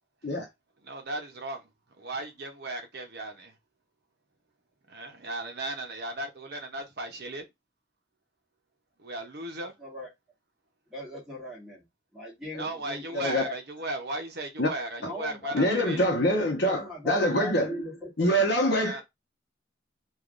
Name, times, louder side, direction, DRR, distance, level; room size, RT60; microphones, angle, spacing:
voice 1, 0.8-1.7 2.0-3.5 4.9-7.4 9.0-9.7 12.6-16.0 18.8-19.0, right 2 dB, 50° right, 0.7 m, -36 dB
voice 2, 9.8-10.1 10.9-11.9 12.1-13.5 15.0-16.4 16.6-18.4, left 1 dB, ahead, 1.3 m, -39 dB
voice 3, 13.1-13.4 14.6-14.7 15.5-17.7 18.2-19.0, equal, 55° left, 0.8 m, -25 dB
3.4 x 2.4 x 2.5 m
head